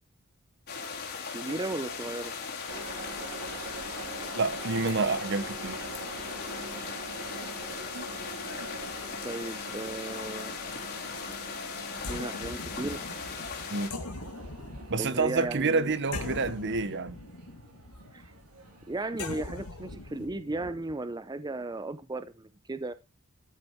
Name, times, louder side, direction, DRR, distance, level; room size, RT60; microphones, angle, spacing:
sound 1, 0.7-13.9, left 5 dB, 45° left, 3.6 m, -38 dB
voice 1, 1.3-2.3 9.2-10.6 12.1-13.0 15.0-15.9 18.1-18.3 18.9-22.9, right 2 dB, 20° right, 0.5 m, -35 dB
sound 2, 2.7-20.3, right 2 dB, 75° right, 3.9 m, -44 dB
voice 2, 4.4-5.8 13.7-13.9 14.9-17.2, right 4 dB, 55° right, 0.9 m, -28 dB
sound 3, 11.9-20.9, left 2 dB, 90° left, 2.3 m, -41 dB
13.5 x 7.2 x 4.5 m
head